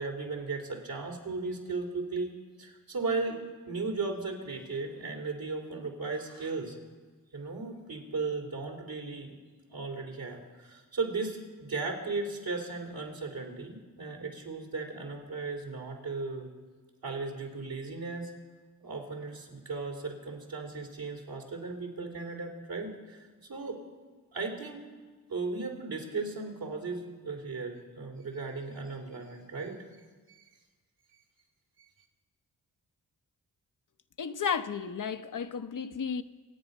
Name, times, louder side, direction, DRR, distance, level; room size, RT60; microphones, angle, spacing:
voice 1, 0.0-2.3 2.6-3.4 3.7-6.8 7.3-9.3 9.7-16.5 17.0-18.3 18.8-23.8 24.3-24.9 25.3-29.8 30.3-30.4, right 3 dB, 70° right, 3.4 m, -36 dB
voice 2, 34.2-36.2, left 6 dB, 55° left, 0.8 m, -33 dB
26.0 x 8.9 x 5.4 m
cardioid pair, 50°, 38 cm